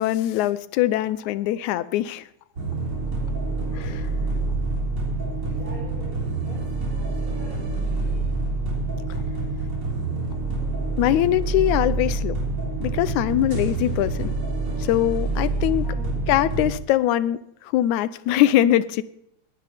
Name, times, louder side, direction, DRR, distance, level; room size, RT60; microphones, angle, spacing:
voice 1, 0.0-2.3 3.7-4.0 11.0-12.4 12.8-14.3 14.8-15.8 16.3-19.0, left 13 dB, 85° left, 16 dB, 2.1 m, -22 dB
sound 1, 2.6-16.7, right 3 dB, 35° right, 4.0 m, -27 dB
voice 2, 3.3-4.2 5.4-8.3 15.8-16.2, right 2 dB, 25° left, -4 dB, 3.9 m, -44 dB
20.5 x 10.5 x 3.5 m, 0.76 s
omnidirectional pair, 3.4 m